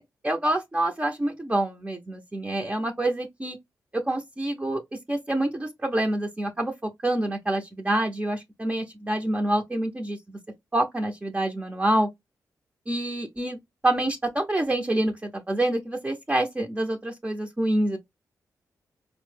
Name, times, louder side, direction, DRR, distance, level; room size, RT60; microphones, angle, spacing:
voice 1, 0.0-3.6 4.1-4.8 5.1-10.4 10.7-12.1 12.9-18.0, right 1 dB, 20° right, 0.7 m, -27 dB
4.1 x 2.1 x 3.2 m
cardioid pair, 55°, 7 cm